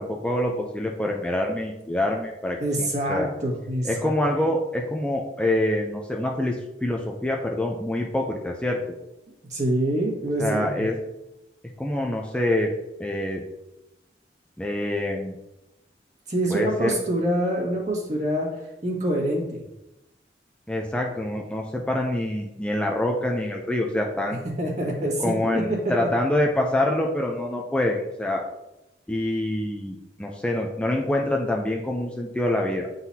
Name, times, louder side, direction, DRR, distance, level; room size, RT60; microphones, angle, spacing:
voice 1, 0.0-3.3 3.8-8.8 10.4-11.0 11.8-12.7 13.0-13.4 14.6-15.4 16.5-16.9 20.7-24.4 25.2-28.4 29.1-32.9, left 1 dB, 5° left, 0 dB, 0.5 m, -26 dB
voice 2, 2.6-4.1 9.5-10.8 16.3-18.5 18.8-19.6 24.6-25.9, right 1 dB, 45° right, -2 dB, 1.7 m, -25 dB
9.0 x 4.0 x 2.8 m, 0.95 s
head